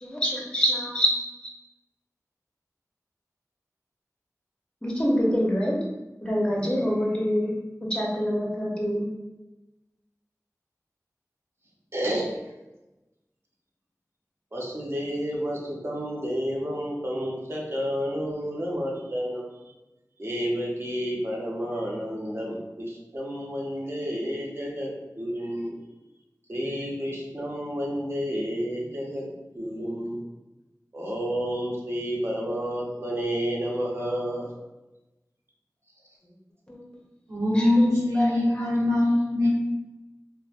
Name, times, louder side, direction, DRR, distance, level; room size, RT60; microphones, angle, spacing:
voice 1, 0.0-1.1 4.8-5.8 6.2-7.5 7.9-9.1 36.7-36.9 37.6-38.6, equal, 15° left, -2 dB, 0.7 m, -26 dB
voice 2, 11.9-12.3 14.5-19.6 20.2-25.8 26.5-30.2 30.9-34.5, equal, 40° right, -3 dB, 0.7 m, -30 dB
voice 3, 37.3-39.5, left 1 dB, 65° right, -8 dB, 1.1 m, -22 dB
3.0 x 2.1 x 2.4 m, 1.0 s
wide cardioid pair, 40°, 6 cm